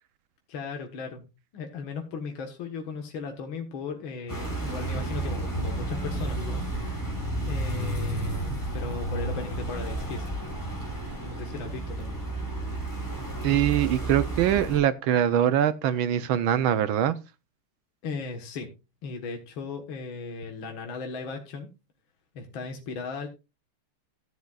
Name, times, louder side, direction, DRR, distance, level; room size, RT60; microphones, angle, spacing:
voice 1, 0.5-1.2 1.5-6.7 7.4-10.3 11.2-12.2 18.0-18.7 19.0-21.7 22.4-23.3, left 4 dB, 65° left, 2.2 m, -37 dB
sound 1, 4.3-14.8, right 2 dB, 10° left, 5.3 m, -32 dB
voice 2, 13.4-17.2, right 10 dB, 75° right, 1.4 m, -23 dB
14.5 x 10.5 x 2.4 m
omnidirectional pair, 2.4 m